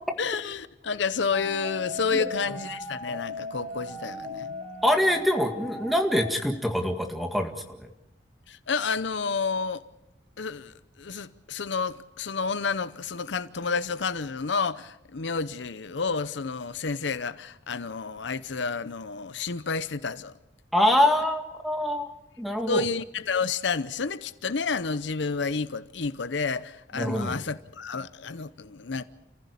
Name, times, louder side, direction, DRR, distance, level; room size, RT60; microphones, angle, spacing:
voice 1, 0.2-4.5 8.5-9.8 10.4-20.3 22.7-29.0, left 5 dB, 75° left, 0.8 m, -30 dB
sound 1, 1.3-6.3, left 2 dB, 35° right, 6.3 m, -37 dB
voice 2, 4.8-7.9 20.7-22.0 22.4-22.8 27.0-27.4, left 1 dB, ahead, 2.0 m, -24 dB
29.5 x 15.5 x 8.4 m
head